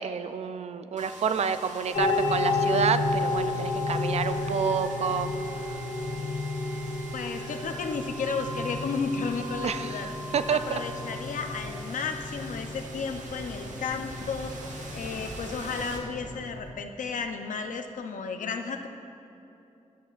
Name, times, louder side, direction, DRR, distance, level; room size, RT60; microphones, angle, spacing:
voice 1, 0.0-5.7 9.6-10.0 10.3-10.8, right 7 dB, 55° right, 12 dB, 0.4 m, -29 dB
sound 1, 1.0-16.8, right 2 dB, 75° right, 1.2 m, -42 dB
sound 2, 1.9-16.7, left 2 dB, 50° left, 1.4 m, -32 dB
voice 2, 7.1-10.1 10.5-14.6 14.9-18.9, left 5 dB, 85° left, 6 dB, 0.7 m, -33 dB
13.5 x 11.0 x 2.5 m, 2.8 s
wide cardioid pair, 175°, 13 cm